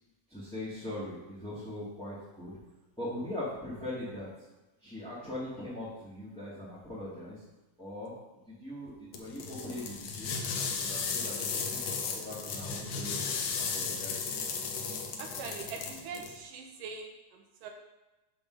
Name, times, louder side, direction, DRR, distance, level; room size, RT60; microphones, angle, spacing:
voice 1, 0.3-2.5 3.0-4.3 4.8-7.4 7.8-8.1 8.5-14.1, left 1 dB, 5° left, -10 dB, 0.8 m, -41 dB
sound 1, 9.1-16.3, left 5 dB, 85° left, 1.4 m, -35 dB
voice 2, 15.2-17.1 17.6-17.7, right 5 dB, 80° right, 2 dB, 2.3 m, -42 dB
6.9 x 3.6 x 6.3 m, 1.1 s
omnidirectional pair, 3.8 m